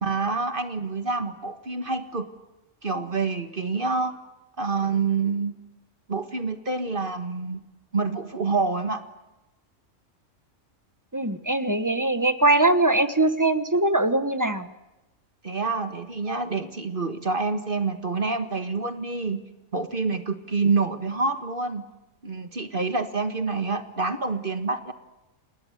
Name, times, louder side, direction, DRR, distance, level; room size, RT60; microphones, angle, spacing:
voice 1, 0.0-2.3 2.8-4.1 4.6-5.5 6.1-7.6 7.9-9.0 15.4-19.4 19.7-21.8 22.2-24.9, right 4 dB, 40° right, 8 dB, 1.8 m, -27 dB
voice 2, 11.1-14.7, right 2 dB, 15° right, 11 dB, 1.3 m, -22 dB
29.0 x 19.0 x 9.4 m, 1.0 s
omnidirectional pair, 1.4 m